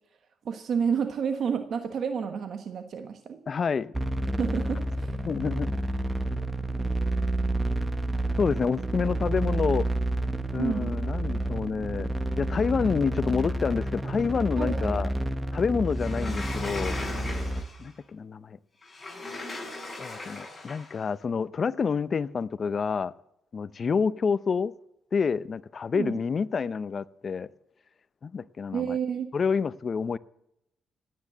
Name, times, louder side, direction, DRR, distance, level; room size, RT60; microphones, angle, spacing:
voice 1, 0.4-3.4 4.4-5.2 10.6-10.9 14.6-14.9 25.9-26.2 28.7-29.3, right 7 dB, 60° right, 1.3 m, -30 dB
voice 2, 3.5-3.9 5.2-5.8 6.3-6.4 8.4-9.9 10.5-12.1 12.4-15.1 15.5-17.0 17.8-18.6 20.0-23.1 23.5-24.7 25.1-27.5 28.2-28.9 29.3-30.2, left 5 dB, 40° left, 0.7 m, -28 dB
sound 1, 3.9-17.6, right 1 dB, 15° right, 1.0 m, -29 dB
Sliding door, 15.9-17.9 18.8-21.0, left 2 dB, 15° left, 7.2 m, -38 dB
16.5 x 9.5 x 7.7 m
cardioid pair, 90°, 0 cm